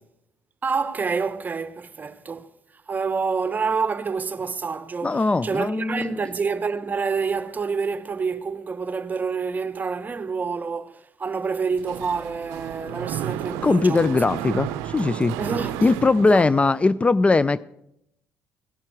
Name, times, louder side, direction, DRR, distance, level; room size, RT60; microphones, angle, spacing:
voice 1, 0.6-2.5 2.9-14.2 15.4-16.5, right 5 dB, 35° right, 0.9 m, -28 dB
voice 2, 5.0-6.2 13.6-15.4 15.8-17.6, left 3 dB, 25° left, 0.4 m, -20 dB
Mechanisms, 11.7-16.9, right 12 dB, 85° right, 0.5 m, -33 dB
16.5 x 11.0 x 4.8 m
supercardioid pair, 65°, 5 cm